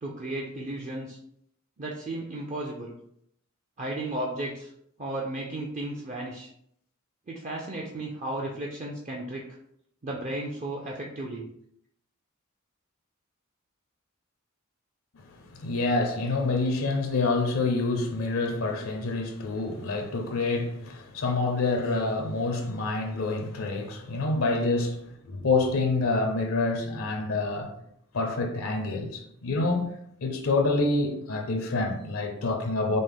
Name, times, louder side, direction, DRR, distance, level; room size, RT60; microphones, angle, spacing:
voice 1, 0.0-1.2 1.8-3.0 3.8-4.7 5.0-6.5 7.3-9.5 10.0-11.5, right 1 dB, 35° right, 0.5 m, -34 dB
voice 2, 15.4-27.7 28.1-29.9 30.2-33.0, left 3 dB, 80° left, 0.6 m, -27 dB
5.1 x 2.0 x 3.5 m
head